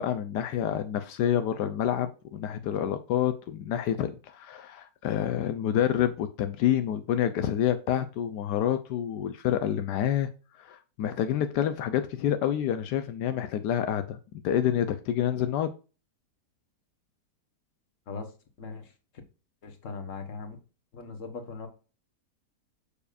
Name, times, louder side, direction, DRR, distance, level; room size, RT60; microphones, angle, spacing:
voice 1, 0.0-14.2 14.4-15.7, left 10 dB, 80° left, 9 dB, 1.2 m, -28 dB
voice 2, 19.6-20.6 20.9-21.7, left 4 dB, 50° left, 6 dB, 1.6 m, -39 dB
7.0 x 6.7 x 2.5 m, 0.33 s
omnidirectional pair, 1.8 m